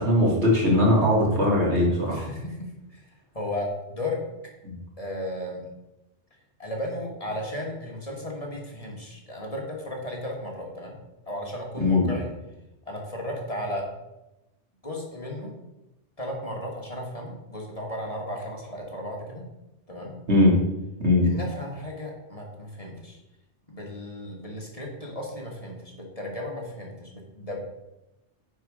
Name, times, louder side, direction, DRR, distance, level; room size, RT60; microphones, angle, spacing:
voice 1, 0.0-2.3 4.6-4.7 11.8-12.1 20.3-20.6 21.0-21.3, left 1 dB, 70° right, -3 dB, 2.4 m, -20 dB
voice 2, 2.1-3.0 3.3-4.2 5.0-5.6 6.6-11.0 11.2-12.3 12.9-13.8 14.8-15.5 16.2-19.4 19.9-20.2 21.2-23.2 23.7-27.6, left 1 dB, 30° left, -1 dB, 1.5 m, -35 dB
9.5 x 4.8 x 4.9 m, 0.96 s
omnidirectional pair, 1.2 m